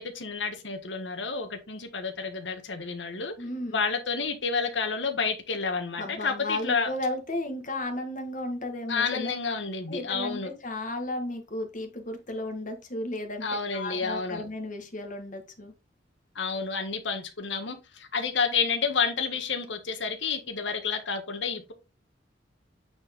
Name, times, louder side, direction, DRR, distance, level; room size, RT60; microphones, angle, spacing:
voice 1, 0.0-3.4 3.7-6.9 8.9-10.5 13.4-14.5 16.3-21.7, left 5 dB, 80° left, 1.5 m, -30 dB
voice 2, 3.4-3.8 6.0-9.3 9.9-13.5 13.7-15.7, left 1 dB, 45° left, 1.8 m, -34 dB
8.8 x 4.5 x 3.7 m
head